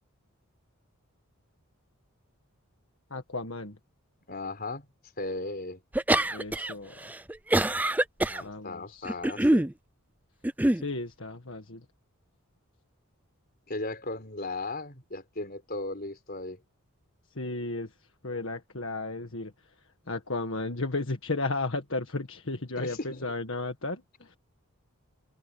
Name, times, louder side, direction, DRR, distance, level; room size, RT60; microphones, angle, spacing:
voice 1, 3.1-3.8 6.3-7.1 8.4-9.1 10.7-11.8 17.3-17.9 18.2-19.7 20.1-24.4, left 2 dB, 60° left, 1.7 m, -34 dB
voice 2, 4.3-4.9 5.2-5.8 8.2-9.7 13.7-16.6 22.8-23.3 24.2-24.4, left 2 dB, 45° left, 4.5 m, -36 dB
sound 1, 5.9-6.7 7.1-8.4 9.0-9.7 10.4-10.8, right 1 dB, 5° right, 0.5 m, -24 dB
open air
head